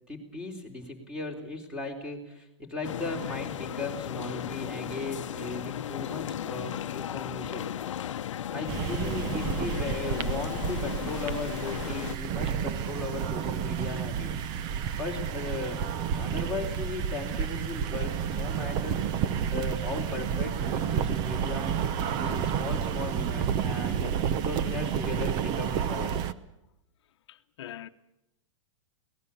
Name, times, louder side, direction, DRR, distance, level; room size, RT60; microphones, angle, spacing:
voice 1, 0.1-7.7 8.5-14.3 15.0-15.8 16.1-19.0 19.5-21.7 22.2-24.1 24.4-26.3, left 2 dB, 5° right, 3.9 m, -37 dB
sound 1, 2.8-12.2, left 10 dB, 90° left, 0.9 m, -35 dB
sound 2, 8.7-26.3, right 8 dB, 30° right, 0.8 m, -30 dB
voice 2, 27.3-27.9, left 12 dB, 65° left, 1.1 m, -43 dB
24.5 x 18.5 x 7.1 m
supercardioid pair, 160°, 15 cm